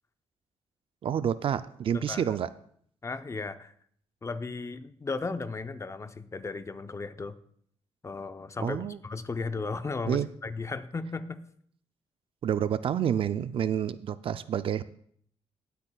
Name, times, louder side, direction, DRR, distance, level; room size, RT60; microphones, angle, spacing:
voice 1, 1.0-2.5 8.6-9.0 10.1-10.3 12.4-14.8, right 9 dB, 55° right, 14 dB, 0.4 m, -28 dB
voice 2, 1.9-2.4 3.0-3.7 4.2-7.4 8.0-8.8 9.0-11.4, left 3 dB, 25° left, 10 dB, 0.7 m, -35 dB
17.5 x 8.2 x 2.3 m, 0.62 s
cardioid pair, 95°, 11 cm